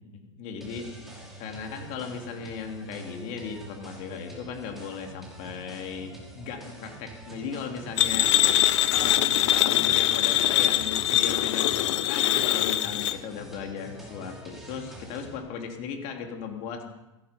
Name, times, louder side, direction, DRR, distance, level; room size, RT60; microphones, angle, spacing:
voice 1, 0.1-0.9 1.4-8.3 8.8-16.8, left 6 dB, 50° left, 3 dB, 3.3 m, -37 dB
sound 1, 0.6-15.4, right 1 dB, ahead, 5.9 m, -46 dB
sound 2, 8.0-13.2, left 14 dB, 65° left, 0.9 m, -23 dB
16.5 x 14.5 x 5.4 m, 0.97 s
hypercardioid pair, 115°, 16 cm